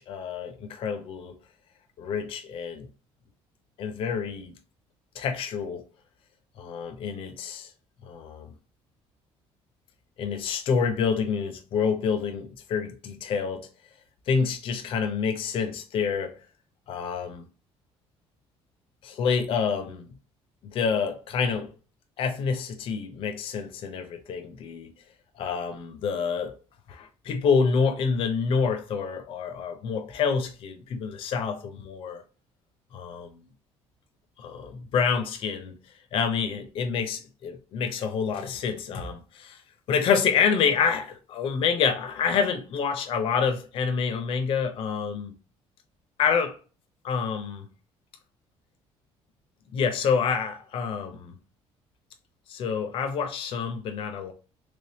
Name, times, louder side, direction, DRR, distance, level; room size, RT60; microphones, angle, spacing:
voice 1, 0.0-1.4 2.0-2.9 3.8-4.5 5.1-5.8 6.6-7.7 8.0-8.5 10.2-13.7 14.3-16.4 16.9-17.4 19.0-20.1 20.6-21.7 22.2-24.9 25.4-26.6 26.9-32.2 32.9-33.4 34.4-35.8 36.1-39.6 39.9-45.3 46.2-46.6 47.0-47.7 49.7-51.3 52.5-54.3, left 6 dB, 50° left, 0.5 m, -27 dB
3.4 x 3.1 x 2.7 m
cardioid pair, 150°, 11 cm